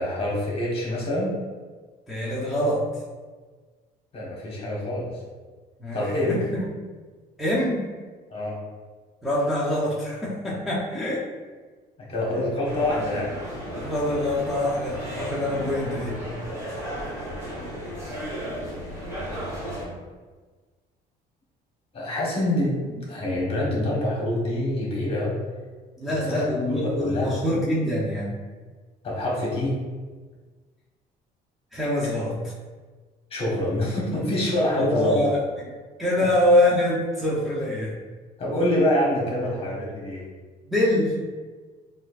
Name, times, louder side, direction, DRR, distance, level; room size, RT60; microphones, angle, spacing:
voice 1, 0.0-1.4 4.1-5.1 5.9-6.4 8.3-8.6 12.0-13.3 18.7-19.7 21.9-25.4 26.1-27.4 29.0-29.8 33.3-35.2 36.2-36.3 38.4-40.2, left 1 dB, 35° left, -4 dB, 1.2 m, -26 dB
voice 2, 2.1-2.8 5.8-6.6 7.4-7.9 9.2-11.2 13.7-16.2 26.0-28.3 31.7-32.3 34.8-35.7 36.0-37.9 40.7-41.1, left 1 dB, ahead, -9 dB, 0.7 m, -24 dB
sound 1, 12.6-19.8, equal, 15° right, 1.3 m, -34 dB
4.3 x 2.5 x 2.4 m, 1.4 s
cardioid pair, 110°, 17 cm